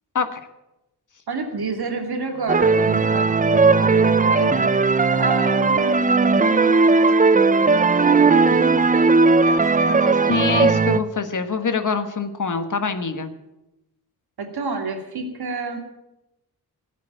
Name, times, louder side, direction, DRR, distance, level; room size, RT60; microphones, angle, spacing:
voice 1, 1.3-4.7 5.2-6.5 7.9-10.3 14.4-15.8, right 4 dB, 70° right, 4 dB, 2.6 m, -30 dB
Wind instrument woodwind instrument, 2.3-8.8, left 5 dB, 80° left, 2.0 m, -42 dB
sound 1, 2.5-11.0, right 4 dB, 20° right, 0.5 m, -17 dB
voice 2, 10.3-13.3, left 5 dB, 50° left, 9 dB, 1.5 m, -24 dB
17.0 x 8.3 x 9.2 m, 0.94 s
wide cardioid pair, 120°, 39 cm